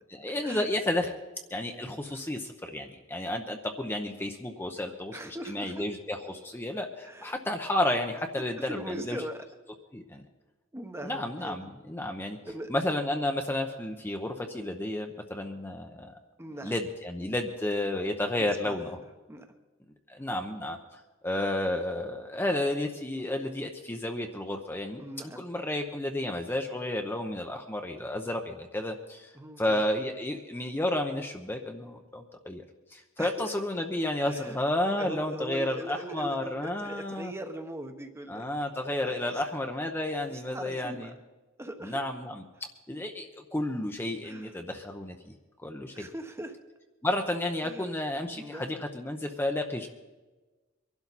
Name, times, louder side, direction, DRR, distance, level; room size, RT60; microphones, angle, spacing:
voice 1, 0.2-1.1 1.5-9.2 9.9-10.2 11.0-12.4 12.7-16.1 16.6-19.0 20.1-25.0 25.4-29.3 29.6-32.6 32.9-37.3 38.3-41.1 41.8-42.4 42.9-45.3 45.6-46.1 47.0-49.9, left 1 dB, 10° left, 3 dB, 0.8 m, -32 dB
voice 2, 4.8-5.9 7.0-7.4 8.4-9.5 10.7-11.7 12.4-12.7 16.4-16.8 18.4-19.5 25.0-25.5 29.3-29.8 33.2-33.5 34.2-34.6 34.9-38.5 38.8-39.4 40.3-41.1 41.6-42.0 44.2-44.6 45.9-46.6 47.6-48.1 48.3-48.8, right 1 dB, 15° right, 6 dB, 1.0 m, -41 dB
23.0 x 12.0 x 4.1 m, 1.2 s
head